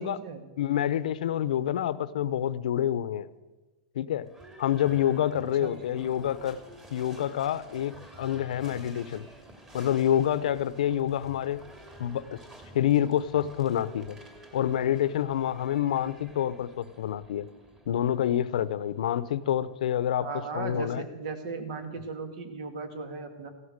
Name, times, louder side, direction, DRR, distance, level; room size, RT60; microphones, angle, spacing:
voice 1, 0.0-0.4 5.6-6.0 20.2-23.5, right 4 dB, 65° right, 7 dB, 2.5 m, -37 dB
voice 2, 0.6-3.3 3.9-4.3 4.6-6.6 6.9-9.3 9.7-11.6 12.0-12.4 12.7-14.2 14.5-17.5 17.9-20.3 20.5-21.1, left 10 dB, 80° left, 16 dB, 0.8 m, -27 dB
Livestock farm animals working animals / Bell, 4.2-20.1, right 1 dB, 15° right, 2.6 m, -51 dB
16.0 x 13.0 x 6.6 m, 1.2 s
supercardioid pair, 150°, 4 cm